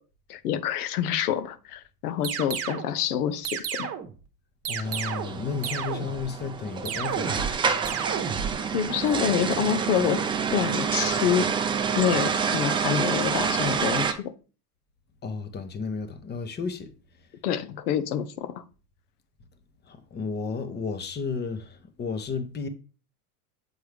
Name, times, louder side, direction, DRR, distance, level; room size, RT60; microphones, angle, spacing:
voice 1, 0.3-3.9 8.7-11.5 12.0-14.3 17.4-18.6, left 9 dB, 70° left, 0.8 m, -27 dB
sound 1, 2.2-2.9 3.4-4.2 4.6-5.4 5.6-6.3 6.8-7.6 7.8-8.5, right 8 dB, 30° right, 1.1 m, -32 dB
voice 2, 4.7-7.6 15.2-16.9 19.9-22.7, left 5 dB, 20° left, 0.9 m, -33 dB
sound 2, 4.8-14.1, right 6 dB, 10° right, 0.4 m, -28 dB
8.1 x 4.5 x 3.4 m
hypercardioid pair, 95°, 47 cm